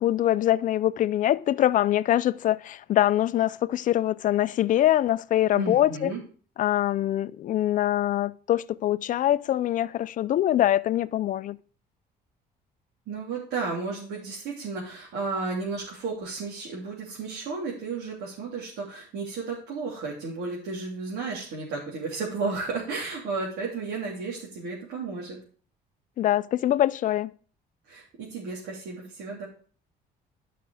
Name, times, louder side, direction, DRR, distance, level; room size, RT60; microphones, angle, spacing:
voice 1, 0.0-6.1 6.6-11.6 26.2-27.3, left 12 dB, 50° left, 0.5 m, -24 dB
voice 2, 5.5-6.2 13.1-25.4 27.9-29.5, right 4 dB, 80° right, 3.4 m, -33 dB
11.0 x 5.9 x 4.9 m
cardioid pair, 110°, 17 cm